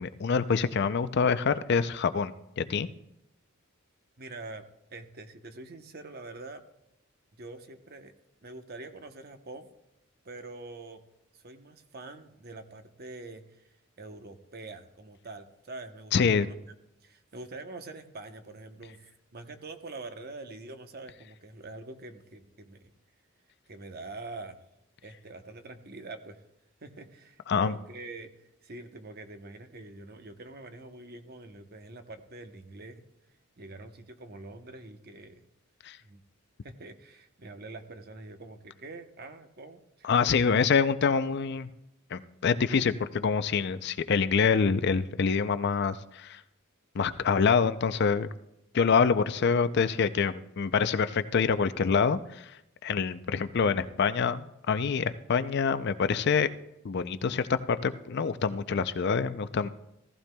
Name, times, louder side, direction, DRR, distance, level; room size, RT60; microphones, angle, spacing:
voice 1, 0.0-2.9 16.1-16.5 27.5-27.7 35.8-36.0 40.0-41.7 42.1-46.4 46.9-48.3 48.7-52.6 52.8-56.5 56.8-59.7, left 5 dB, 50° left, 12 dB, 0.4 m, -26 dB
voice 2, 4.2-4.6 4.9-6.6 7.4-8.1 8.4-9.7 10.2-11.0 11.3-13.4 14.0-16.6 17.0-19.1 19.3-22.8 23.7-24.6 25.0-26.4 26.8-33.1 33.6-35.4 36.0-36.2 36.6-40.1, right 2 dB, 45° right, 7 dB, 0.9 m, -45 dB
16.0 x 14.5 x 2.2 m, 0.85 s
head